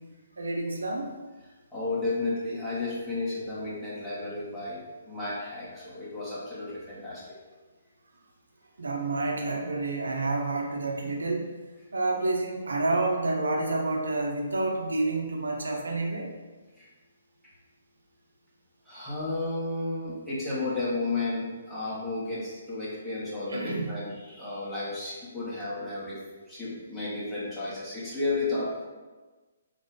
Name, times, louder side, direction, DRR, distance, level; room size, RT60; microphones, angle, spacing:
voice 1, 0.4-1.1 8.8-11.5 11.9-16.3 23.5-23.9, right 2 dB, 85° right, 1 dB, 0.6 m, -29 dB
voice 2, 1.7-7.2 16.8-16.9 18.9-28.9, left 2 dB, 5° left, -10 dB, 1.3 m, -33 dB
4.1 x 2.5 x 3.7 m, 1.3 s
hypercardioid pair, 145°, 0 cm